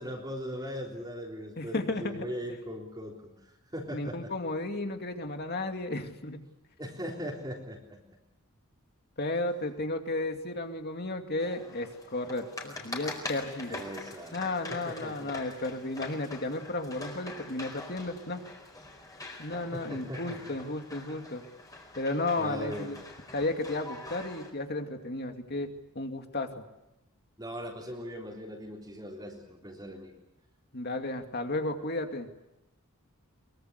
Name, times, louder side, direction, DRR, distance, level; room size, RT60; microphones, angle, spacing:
voice 1, 0.0-3.3 3.7-4.3 6.8-8.0 13.6-14.4 14.7-15.3 19.7-20.6 22.4-22.9 27.4-30.1, equal, 20° right, -2 dB, 3.6 m, -39 dB
voice 2, 1.6-2.3 3.9-6.4 9.2-13.9 14.3-18.4 19.4-21.4 22.0-23.0 23.3-26.6 30.7-32.3, left 2 dB, 45° left, 5 dB, 2.5 m, -33 dB
sound 1, 11.4-24.5, left 2 dB, 15° left, 4.5 m, -44 dB
23.5 x 23.0 x 8.3 m, 0.92 s
head